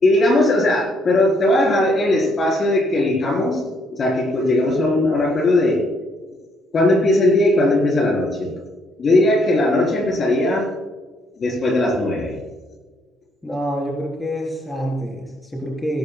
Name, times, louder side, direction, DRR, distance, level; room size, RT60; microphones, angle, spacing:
voice 1, 0.0-3.6 3.9-5.9 6.7-8.5 9.0-10.7 11.4-12.4, left 1 dB, 30° left, 1 dB, 3.7 m, -18 dB
voice 2, 13.4-16.0, equal, 10° left, -1 dB, 3.6 m, -26 dB
22.5 x 12.0 x 2.2 m, 1.4 s
cardioid pair, 135°, 0 cm